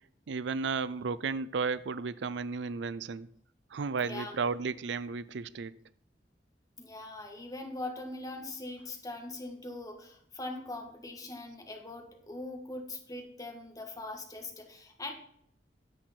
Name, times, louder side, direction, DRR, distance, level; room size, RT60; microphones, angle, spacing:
voice 1, 0.3-3.3 3.7-5.8, right 4 dB, 75° right, 18 dB, 0.5 m, -33 dB
voice 2, 4.0-4.5 6.8-15.1, left 2 dB, 20° left, 3 dB, 1.7 m, -41 dB
10.5 x 7.9 x 4.4 m, 0.66 s
head